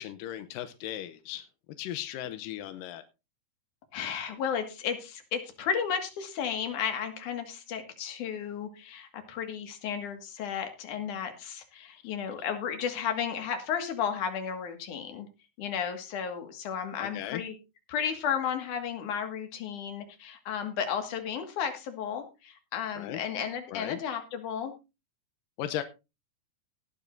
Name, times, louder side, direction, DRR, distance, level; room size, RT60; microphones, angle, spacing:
voice 1, 0.0-1.5 1.8-3.0 11.8-11.9 17.0-17.4 23.0-23.2 23.7-24.0 25.6-25.8, left 12 dB, 90° left, 10 dB, 2.5 m, -37 dB
voice 2, 3.9-15.3 15.6-17.5 17.9-24.7, left 7 dB, 70° left, 6 dB, 3.3 m, -33 dB
18.5 x 10.0 x 2.6 m, 0.28 s
omnidirectional pair, 3.9 m